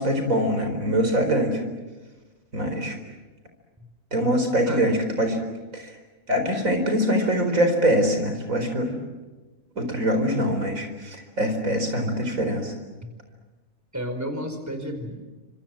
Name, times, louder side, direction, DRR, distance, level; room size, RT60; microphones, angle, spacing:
voice 1, 0.0-1.6 2.5-3.0 4.1-5.4 5.7-5.9 6.3-9.0 9.7-12.7, equal, 90° right, 6 dB, 4.8 m, -23 dB
voice 2, 13.9-15.2, equal, 10° right, 6 dB, 4.5 m, -32 dB
29.5 x 26.5 x 7.6 m, 1.2 s
omnidirectional pair, 1.4 m